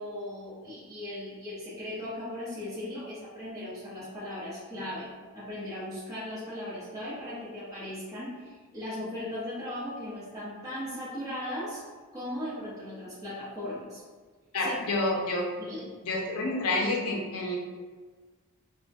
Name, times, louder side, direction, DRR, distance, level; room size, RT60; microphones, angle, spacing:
voice 1, 0.0-11.8 12.1-14.0 14.6-15.0 15.6-16.0, left 1 dB, 15° right, -12 dB, 0.6 m, -38 dB
voice 2, 14.5-15.5 16.0-17.6, left 2 dB, 70° left, -1 dB, 0.5 m, -28 dB
2.4 x 2.1 x 2.5 m, 1.4 s
head